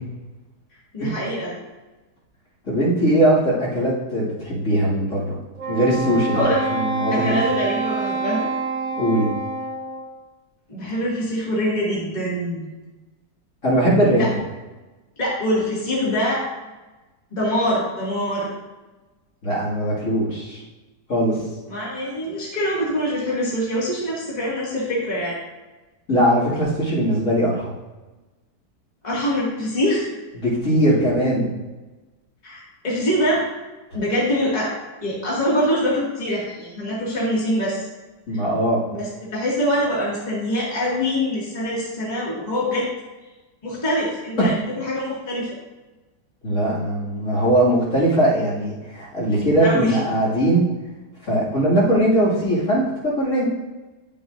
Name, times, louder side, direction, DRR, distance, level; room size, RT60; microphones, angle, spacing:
voice 1, 0.9-1.6 6.3-6.6 7.1-8.5 10.7-12.7 14.2-14.3 15.2-16.5 17.3-18.5 21.7-25.4 29.0-30.1 32.4-33.4 33.9-34.7 35.0-37.9 38.3-38.4 38.9-42.9 43.6-45.5 49.6-50.0, equal, 25° left, -7 dB, 2.1 m, -24 dB
voice 2, 2.7-5.4 5.7-7.4 8.9-9.3 13.6-14.3 19.4-20.6 21.1-21.4 26.1-27.7 30.4-31.5 38.3-38.8 44.4-44.5 46.4-50.7 51.2-53.4, right 1 dB, 45° left, -8 dB, 2.5 m, -20 dB
Wind instrument woodwind instrument, 5.6-10.2, right 3 dB, 85° right, 1.6 m, -26 dB
10.5 x 6.9 x 2.5 m, 1.2 s
omnidirectional pair, 1.9 m